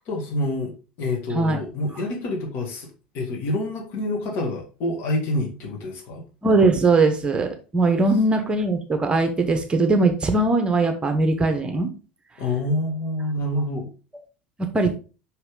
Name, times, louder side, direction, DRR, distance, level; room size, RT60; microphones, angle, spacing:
voice 1, 0.1-6.2 12.4-13.9, left 1 dB, 50° left, 1 dB, 2.2 m, -27 dB
voice 2, 6.4-11.9 14.6-14.9, right 3 dB, 20° right, 6 dB, 1.1 m, -20 dB
5.7 x 5.5 x 3.8 m, 0.33 s
figure-of-eight pair, 70°, 5 cm